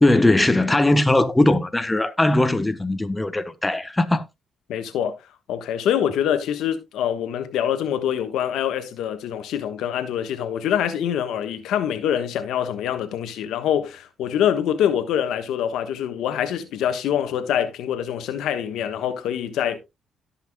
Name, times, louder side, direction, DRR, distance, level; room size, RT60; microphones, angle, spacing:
voice 1, 0.0-4.2, left 2 dB, 15° left, 0.9 m, -19 dB
voice 2, 4.7-5.2 5.5-19.8, left 9 dB, 85° left, 1.2 m, -25 dB
17.0 x 5.7 x 2.2 m
cardioid pair, 90°, 0 cm